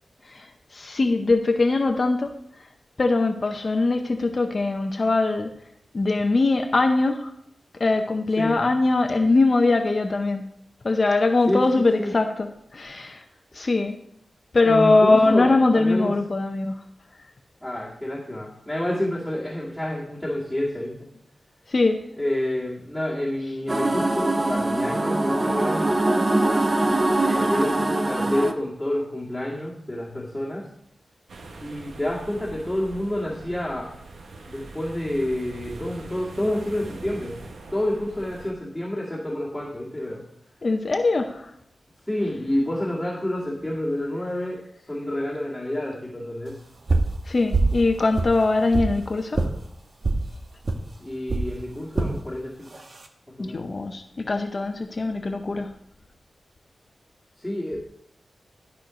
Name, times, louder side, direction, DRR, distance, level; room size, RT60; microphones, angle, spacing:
voice 1, 0.7-2.3 3.0-5.5 5.9-7.3 7.8-10.4 10.8-12.5 12.7-13.2 13.5-14.0 14.5-16.8 21.7-22.0 40.6-41.5 47.3-49.4 53.4-55.7, left 3 dB, 45° left, 5 dB, 0.7 m, -21 dB
voice 2, 14.6-16.1 17.6-20.9 22.2-25.9 27.2-30.6 31.6-33.9 34.4-37.4 37.7-40.2 42.1-44.6 44.9-46.5 51.0-52.7 53.3-53.6 57.4-57.8, left 1 dB, 5° left, -7 dB, 2.3 m, -28 dB
sound 1, 23.7-28.5, right 2 dB, 25° right, 0.7 m, -22 dB
sound 2, 31.3-38.5, right 3 dB, 80° right, 1.1 m, -42 dB
sound 3, 46.9-47.2 47.5-47.8 48.1-48.9 49.3-49.5 50.0-50.2 50.7-50.8 51.3-51.5 52.0-52.2 52.7-53.1, right 3 dB, 45° right, 1.1 m, -23 dB
12.5 x 4.5 x 5.2 m, 0.70 s
wide cardioid pair, 85°, 0 cm